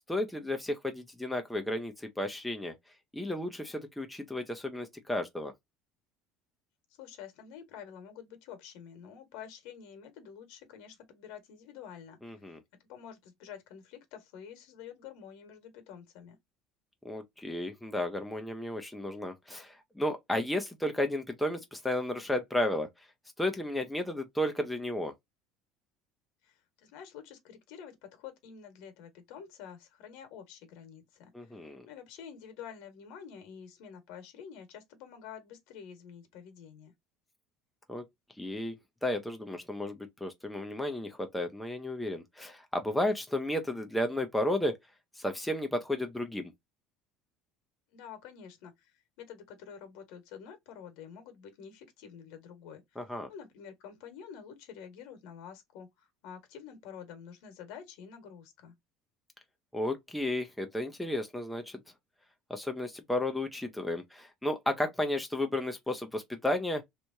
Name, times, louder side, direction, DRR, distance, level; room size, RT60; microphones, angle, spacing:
voice 1, 0.1-2.7 3.1-5.5 12.2-12.6 17.0-22.9 23.4-25.1 31.3-31.9 37.9-38.0 38.4-38.8 39.0-44.8 45.2-46.5 53.0-53.3 59.7-61.8 62.5-66.8, left 1 dB, 5° left, 0.6 m, -33 dB
voice 2, 6.9-12.4 12.8-16.3 26.4-36.9 47.9-58.7, left 8 dB, 65° left, 1.5 m, -48 dB
3.4 x 3.0 x 2.6 m
cardioid pair, 170°, 0 cm